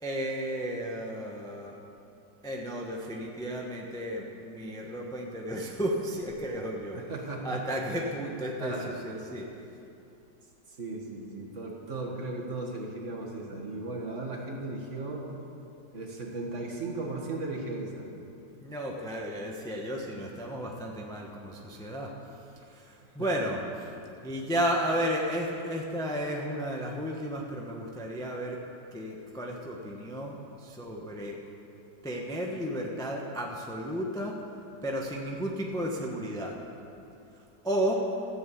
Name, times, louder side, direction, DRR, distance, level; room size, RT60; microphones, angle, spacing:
voice 1, 0.0-1.8 2.4-7.0 7.4-9.5 18.6-22.1 22.7-23.6 24.2-28.6 28.9-31.4 32.0-34.4 34.8-36.6 37.6-38.0, equal, 5° left, -1 dB, 0.8 m, -33 dB
voice 2, 6.9-7.8 8.6-9.0 10.8-15.3 15.9-18.1 23.2-23.5, right 2 dB, 40° right, -1 dB, 1.7 m, -36 dB
14.5 x 7.2 x 8.3 m, 2.7 s
omnidirectional pair, 2.0 m